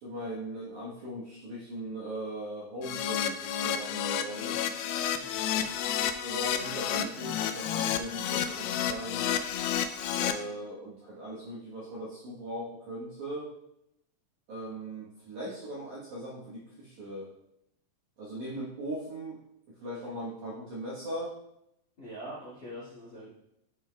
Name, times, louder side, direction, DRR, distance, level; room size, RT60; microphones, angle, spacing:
voice 1, 0.0-4.6 6.2-9.3 10.1-13.5 14.5-17.3 18.2-19.4 19.8-21.4, right 1 dB, 70° right, -7 dB, 1.8 m, -39 dB
Keyboard (musical), 2.8-10.3, left 9 dB, 85° left, 2.8 m, -31 dB
voice 2, 5.1-5.7 6.6-6.7 22.0-23.3, equal, 60° left, -8 dB, 1.1 m, -44 dB
11.5 x 5.4 x 2.2 m, 0.82 s
omnidirectional pair, 5.1 m